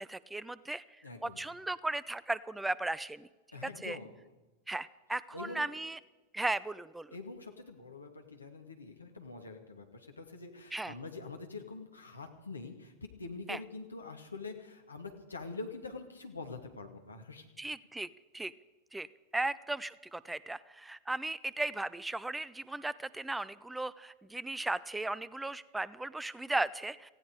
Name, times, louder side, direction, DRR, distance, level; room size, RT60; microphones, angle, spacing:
voice 1, 0.0-0.8 1.2-3.3 3.6-4.0 4.7-6.0 6.3-7.1 10.7-10.9 13.5-13.6 17.6-18.1 18.3-18.5 18.9-19.1 19.3-27.1, right 2 dB, 5° right, 19 dB, 0.4 m, -36 dB
voice 2, 1.0-1.4 3.5-4.2 5.3-5.7 7.1-17.5, left 3 dB, 80° left, 4 dB, 2.3 m, -45 dB
18.0 x 16.0 x 4.9 m, 1.2 s
figure-of-eight pair, 90°, 0 cm